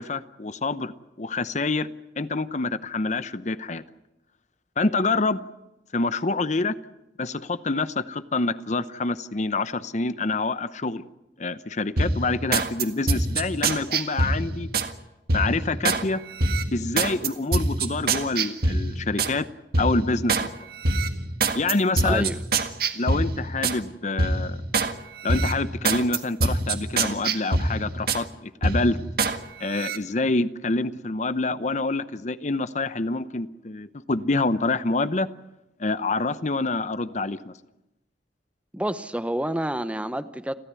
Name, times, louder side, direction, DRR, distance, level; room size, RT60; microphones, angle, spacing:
voice 1, 0.0-1.9 2.2-3.8 4.8-5.4 5.9-6.8 7.2-11.0 11.4-14.7 15.3-16.2 16.7-19.5 19.8-20.6 21.5-22.3 22.9-24.6 25.2-29.0 29.6-35.3 35.8-37.5, left 3 dB, 40° left, 14 dB, 0.8 m, -26 dB
sound 1, 12.0-14.9 15.3-16.0 16.4-19.4 19.7-20.5 20.8-23.8 24.2-24.9 25.3-28.3 28.6-29.4 29.7-30.0, right 3 dB, 55° right, 1.7 m, -25 dB
voice 2, 22.0-22.4 38.7-40.5, right 1 dB, 5° right, 12 dB, 0.8 m, -28 dB
30.0 x 13.5 x 9.6 m, 0.94 s
head